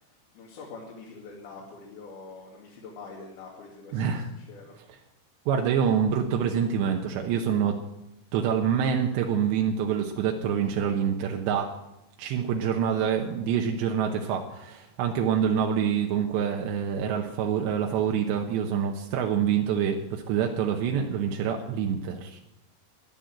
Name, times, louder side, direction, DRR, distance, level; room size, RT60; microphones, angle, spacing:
voice 1, 0.0-4.7, left 4 dB, 65° left, -3 dB, 3.9 m, -45 dB
voice 2, 3.9-4.3 5.5-7.8 8.3-11.7 12.2-22.4, right 8 dB, 80° right, 2 dB, 3.2 m, -26 dB
14.5 x 11.0 x 7.6 m, 0.87 s
omnidirectional pair, 5.1 m